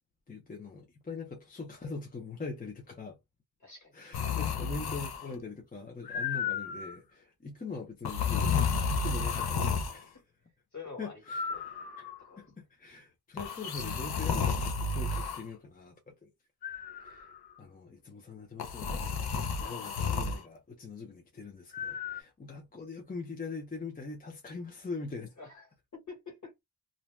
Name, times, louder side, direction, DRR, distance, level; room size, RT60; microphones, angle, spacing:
voice 1, 0.3-3.2 3.9-10.2 11.0-11.5 12.0-16.3 17.0-17.3 17.6-19.2 19.6-25.3, left 4 dB, 25° left, 0.6 m, -42 dB
voice 2, 3.6-3.9 10.7-11.2 11.5-11.7 12.2-12.5 16.9-17.0 25.4-25.7 25.9-26.6, left 4 dB, 50° left, 1.4 m, -47 dB
sound 1, 4.1-5.4 6.0-7.0 8.0-10.0 11.3-12.2 13.4-15.4 16.6-17.4 18.6-20.4 21.7-22.2, left 5 dB, 80° left, 0.6 m, -32 dB
2.6 x 2.2 x 3.1 m
wide cardioid pair, 170°, 38 cm